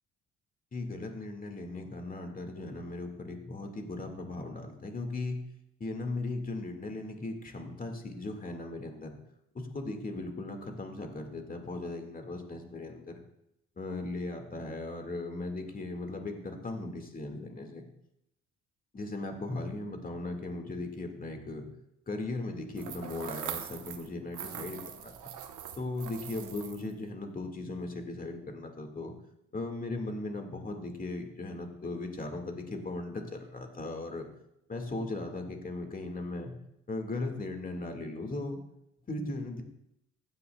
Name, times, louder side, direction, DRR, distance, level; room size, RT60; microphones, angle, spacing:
voice 1, 0.7-5.4 5.8-9.1 9.5-13.1 13.8-17.9 18.9-21.7 22.1-25.3 25.8-29.1 29.5-34.3 34.7-36.5 36.9-38.6 39.1-39.6, left 2 dB, 30° left, 4 dB, 1.8 m, -38 dB
sound 1, 22.8-24.1 24.3-26.9, right 9 dB, 80° right, 1.0 m, -42 dB
15.0 x 9.6 x 2.2 m, 0.80 s
cardioid pair, 90°, 30 cm